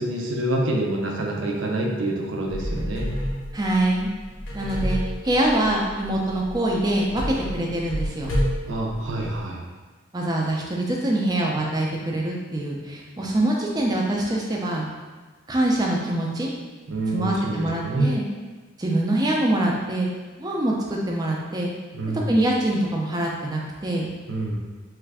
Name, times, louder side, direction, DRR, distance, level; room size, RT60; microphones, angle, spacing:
voice 1, 0.0-3.1 8.7-9.6 16.9-18.1 21.9-22.3 24.3-24.6, right 1 dB, 65° right, -1 dB, 0.5 m, -26 dB
sound 1, 2.5-9.4, equal, 75° left, 0.7 m, -30 dB
voice 2, 3.5-4.1 4.5-8.3 10.1-14.9 15.5-16.5 17.1-18.2 18.8-20.1 20.4-21.7 22.1-24.1, right 1 dB, 20° right, -2 dB, 0.4 m, -24 dB
3.1 x 2.4 x 3.4 m, 1.4 s
head